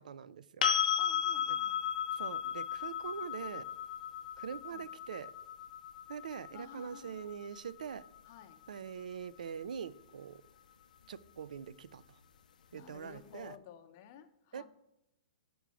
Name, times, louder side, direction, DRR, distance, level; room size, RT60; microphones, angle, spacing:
voice 1, 0.0-0.8 1.5-1.6 2.1-3.7 4.4-5.3 6.1-8.1 8.7-10.4 11.1-12.0 12.7-13.6 14.5-14.7, right 7 dB, 80° right, 18 dB, 0.4 m, -43 dB
sound 1, 0.6-8.4 11.2-11.3, left 9 dB, 85° left, 0.5 m, -35 dB
voice 2, 0.9-1.8 4.7-4.8 6.5-7.3 8.3-8.6 12.7-14.7, left 9 dB, 25° left, 9 dB, 0.5 m, -53 dB
6.1 x 4.9 x 6.8 m, 0.87 s
hypercardioid pair, 180°, 4 cm